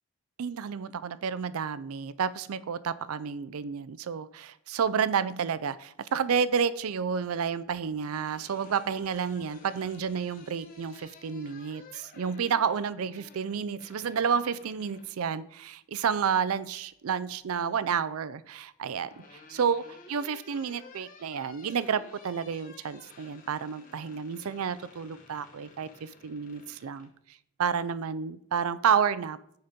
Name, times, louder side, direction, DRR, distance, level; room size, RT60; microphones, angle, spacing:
voice 1, 0.4-19.1 19.5-27.1 27.6-29.4, right 7 dB, 80° right, 16 dB, 0.4 m, -30 dB
sound 1, 8.3-15.2 16.7-17.4 18.6-27.1, left 3 dB, 40° left, 1.0 m, -53 dB
9.3 x 4.2 x 5.2 m, 0.74 s
head